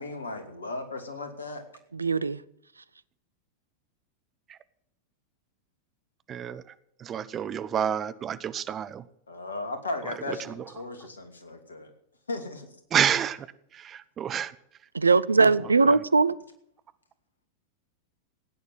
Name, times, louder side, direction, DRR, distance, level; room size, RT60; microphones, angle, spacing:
voice 1, 0.0-1.6 9.3-11.9 12.3-12.7 15.4-15.5, left 2 dB, 75° left, 2.7 m, -35 dB
voice 2, 1.9-2.4 14.9-16.4, right 4 dB, 80° right, 0.6 m, -21 dB
voice 3, 6.3-9.0 10.0-10.6 12.9-13.5 13.7-14.5 15.8-16.0, right 9 dB, 25° right, 0.9 m, -30 dB
15.5 x 9.6 x 7.9 m
figure-of-eight pair, 90°, 0 cm